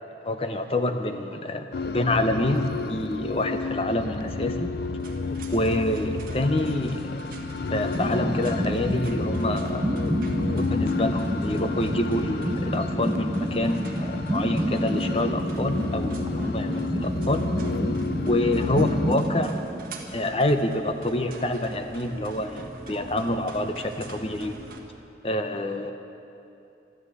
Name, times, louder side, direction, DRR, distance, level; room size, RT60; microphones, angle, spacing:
voice 1, 0.2-4.7 5.5-7.4 7.7-10.0 10.6-17.4 18.3-19.5 20.1-24.6 25.2-25.9, left 1 dB, 30° left, 7 dB, 0.8 m, -27 dB
sound 1, 1.7-19.2, left 4 dB, 55° left, 0.4 m, -31 dB
sound 2, 5.0-24.8, right 1 dB, 50° right, 1.6 m, -44 dB
sound 3, 7.9-20.6, equal, 20° right, 0.6 m, -29 dB
13.5 x 12.0 x 8.4 m, 2.8 s
head